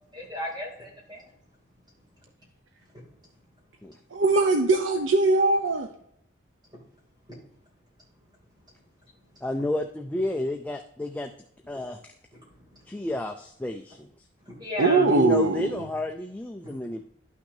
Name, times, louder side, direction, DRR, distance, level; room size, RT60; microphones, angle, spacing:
voice 1, 0.1-1.3 2.9-3.1 7.3-7.4 12.3-12.9 14.4-15.2 16.6-16.8, left 1 dB, 20° right, -2 dB, 2.6 m, -37 dB
voice 2, 4.1-5.9 14.8-15.7, right 3 dB, 80° right, 4 dB, 0.7 m, -21 dB
voice 3, 9.4-11.3 11.7-12.1 12.9-14.1 14.9-17.0, left 2 dB, 10° left, 4 dB, 0.3 m, -31 dB
11.5 x 5.9 x 2.7 m, 0.72 s
head